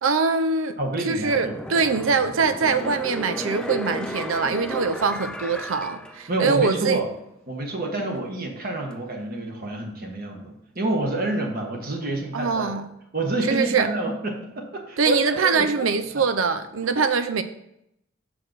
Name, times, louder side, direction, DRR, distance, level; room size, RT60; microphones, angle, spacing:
voice 1, 0.0-0.8 1.1-7.0 12.3-12.9 13.5-13.9 15.0-17.4, right 5 dB, 75° right, 10 dB, 0.5 m, -23 dB
voice 2, 0.8-1.5 6.3-7.1 7.5-12.7 13.1-15.9 16.1-16.2, right 2 dB, 45° right, 1 dB, 1.3 m, -28 dB
sound 1, 1.2-6.8 7.2-7.3, equal, 5° left, 0.3 m, -34 dB
6.5 x 4.8 x 5.9 m, 0.78 s
head